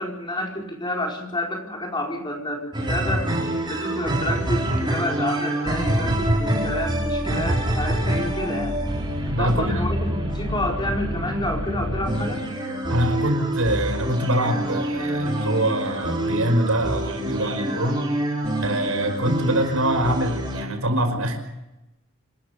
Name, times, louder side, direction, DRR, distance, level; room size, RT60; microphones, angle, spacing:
voice 1, 0.0-3.3 3.7-8.8 9.3-12.4, left 1 dB, 20° left, 1 dB, 4.6 m, -29 dB
sound 1, 2.7-20.6, right 1 dB, 20° right, 5.4 m, -26 dB
voice 2, 9.3-9.8 12.9-18.1 18.6-21.4, right 1 dB, 80° right, 6 dB, 5.2 m, -24 dB
27.0 x 14.0 x 8.4 m, 0.91 s
head